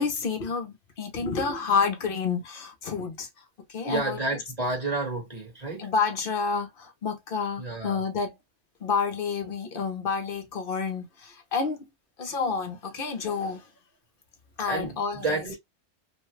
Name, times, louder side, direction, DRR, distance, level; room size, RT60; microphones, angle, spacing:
voice 1, 0.0-3.3 3.7-4.2 5.8-8.4 8.8-11.8 12.2-13.7 14.6-15.4, left 5 dB, 50° left, 0.9 m, -29 dB
voice 2, 3.9-5.9 7.6-8.0 14.7-15.6, right 3 dB, 30° right, 1.4 m, -30 dB
3.1 x 2.2 x 3.1 m
omnidirectional pair, 1.3 m